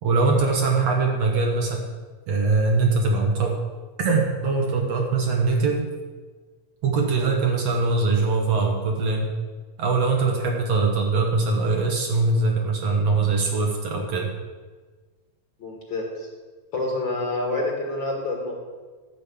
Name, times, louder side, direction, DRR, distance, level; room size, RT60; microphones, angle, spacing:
voice 1, 0.0-1.9 2.3-3.6 4.0-5.9 6.8-9.3 9.8-14.3, right 3 dB, 60° right, 1 dB, 2.1 m, -22 dB
voice 2, 15.6-16.3 16.7-18.5, left 2 dB, 40° left, -1 dB, 2.3 m, -28 dB
12.5 x 5.3 x 8.5 m, 1.4 s
omnidirectional pair, 3.6 m